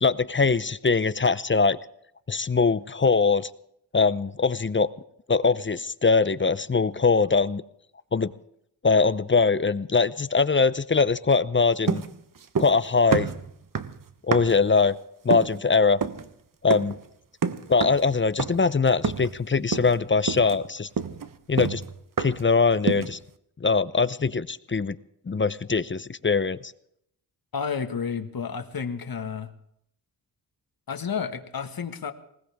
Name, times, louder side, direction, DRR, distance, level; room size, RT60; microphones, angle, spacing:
voice 1, 0.0-1.8 2.3-3.5 3.9-4.9 5.3-7.6 8.1-8.3 8.8-12.0 12.6-13.3 14.2-15.0 15.2-16.0 16.6-17.0 17.7-20.9 21.5-21.8 22.2-23.2 23.6-25.0 25.3-26.7, left 4 dB, 25° left, 16 dB, 0.7 m, -22 dB
sound 1, 11.9-12.8 13.1-14.7 15.3-15.6 16.0-16.3 16.7-17.0 17.4-18.1 18.4-18.7 19.0-19.4 19.7-20.0 20.3-22.5 22.9-23.2, right 6 dB, 50° right, 1.2 m, -29 dB
voice 2, 27.5-29.5 30.9-32.1, left 6 dB, 55° left, 7 dB, 1.8 m, -31 dB
20.0 x 19.0 x 3.6 m, 0.73 s
cardioid pair, 65°, 42 cm